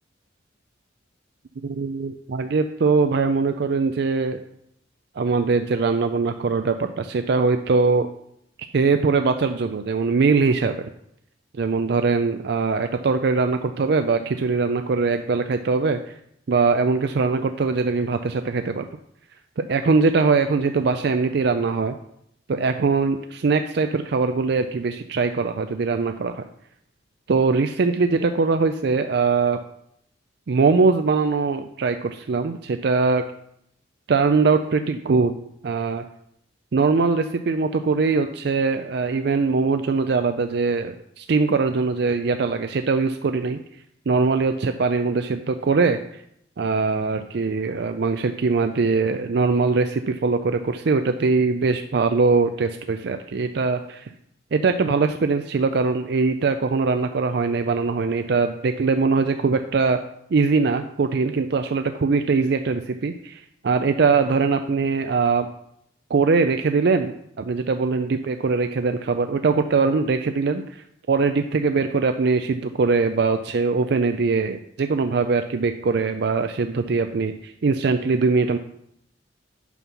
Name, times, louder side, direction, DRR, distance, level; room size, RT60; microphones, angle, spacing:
voice 1, 1.6-4.4 5.2-8.1 8.7-10.7 11.5-16.2 16.5-18.9 19.6-22.0 22.5-26.4 27.3-29.6 30.5-33.2 34.1-35.3 35.6-36.0 36.7-43.6 44.1-46.2 46.6-54.1 54.5-60.0 60.3-65.5 66.1-78.6, right 4 dB, 60° right, 8 dB, 0.4 m, -22 dB
8.3 x 5.5 x 5.7 m, 0.74 s
head